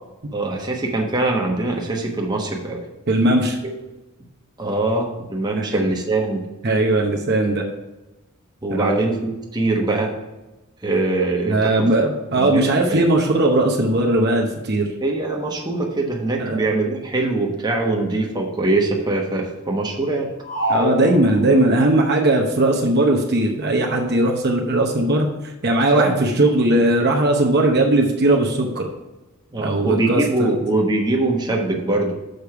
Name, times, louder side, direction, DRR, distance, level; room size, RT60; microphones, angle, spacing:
voice 1, 0.3-2.8 3.6-3.7 4.6-6.5 8.6-10.1 10.8-11.9 12.3-12.6 12.9-13.0 15.0-20.3 25.9-26.1 29.5-32.1, right 2 dB, 20° right, 0 dB, 1.1 m, -22 dB
voice 2, 3.1-3.6 5.6-5.7 6.6-7.6 8.8-9.0 11.5-14.9 16.4-16.6 20.7-25.3 25.6-28.9 29.6-30.5, right 2 dB, 45° right, 1 dB, 0.8 m, -18 dB
sound 1, 20.4-21.9, left 1 dB, 75° left, 2.8 m, -25 dB
6.6 x 5.1 x 5.8 m, 1.1 s
head